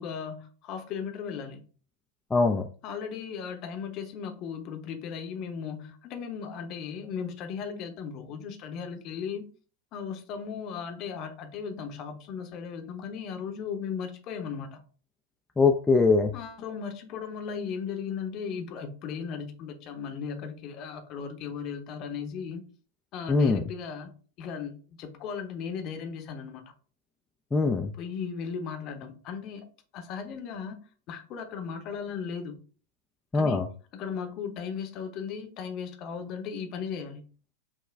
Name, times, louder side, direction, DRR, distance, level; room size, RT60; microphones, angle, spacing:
voice 1, 0.0-1.6 2.8-9.5 9.9-14.8 16.3-22.6 23.1-26.6 28.0-29.7 29.9-30.8 31.1-32.6 33.3-33.6 33.9-37.3, left 6 dB, 40° left, 0.8 m, -36 dB
voice 2, 2.3-2.6 15.6-16.3 23.3-23.6 27.5-27.9 33.3-33.7, left 4 dB, 10° left, 0.4 m, -22 dB
6.0 x 2.3 x 3.3 m
figure-of-eight pair, 90°, 0 cm